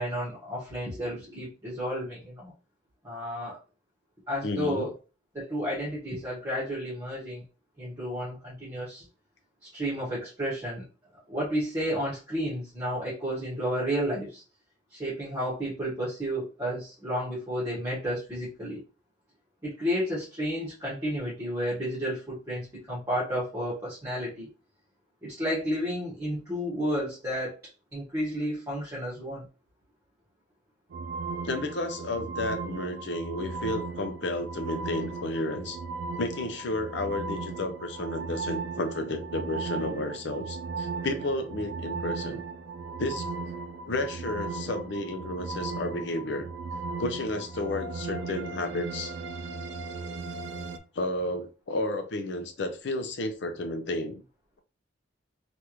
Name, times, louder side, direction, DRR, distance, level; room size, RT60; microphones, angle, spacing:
voice 1, 0.0-2.5 3.0-3.6 4.3-4.9 5.3-7.4 7.8-9.0 9.6-10.8 11.3-14.4 14.9-18.8 19.6-24.5 25.2-27.6 27.9-29.5, equal, 15° right, 1.3 m, -32 dB
voice 2, 4.4-4.9 31.4-35.8 36.2-42.4 43.0-43.4 43.8-46.5 47.0-49.1 50.9-54.2, left 2 dB, 65° left, 0.6 m, -32 dB
sound 1, 30.9-50.8, right 4 dB, 65° right, 0.4 m, -36 dB
3.4 x 2.5 x 3.0 m
head